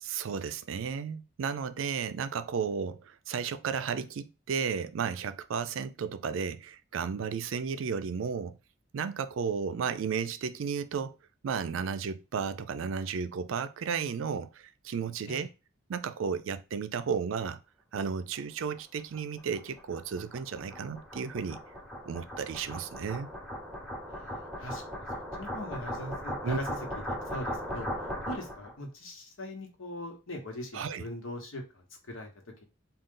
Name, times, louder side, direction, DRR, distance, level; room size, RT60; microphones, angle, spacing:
voice 1, 0.0-8.6 8.9-11.1 11.4-15.5 15.9-17.6 17.9-21.6 22.0-23.3 26.4-26.6 30.7-31.0, right 6 dB, 75° right, 0.4 m, -33 dB
sound 1, 18.7-28.7, equal, ahead, 0.8 m, -38 dB
voice 2, 24.1-25.0 25.4-26.8 27.3-27.9 28.2-32.3, left 1 dB, 85° left, 1.1 m, -40 dB
3.7 x 2.4 x 3.7 m
head